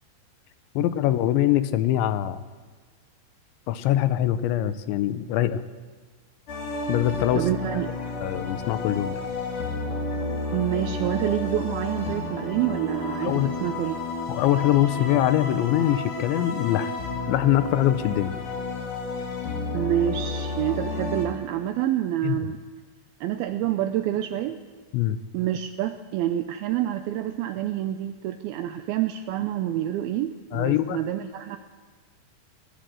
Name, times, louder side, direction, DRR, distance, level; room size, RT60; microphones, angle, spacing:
voice 1, 0.8-2.4 3.7-5.6 6.9-7.5 8.2-9.2 13.2-13.5 14.3-16.9 17.3-18.3 22.2-22.4 24.9-25.2 30.5-31.0, left 13 dB, 85° left, 12 dB, 3.2 m, -23 dB
sound 1, 6.5-21.3, left 3 dB, 45° left, 4.2 m, -31 dB
voice 2, 7.3-7.9 10.5-14.0 19.7-22.6 23.2-24.6 25.3-31.6, right 12 dB, 85° right, 7 dB, 2.2 m, -27 dB
20.5 x 17.0 x 7.8 m, 1.4 s
omnidirectional pair, 5.2 m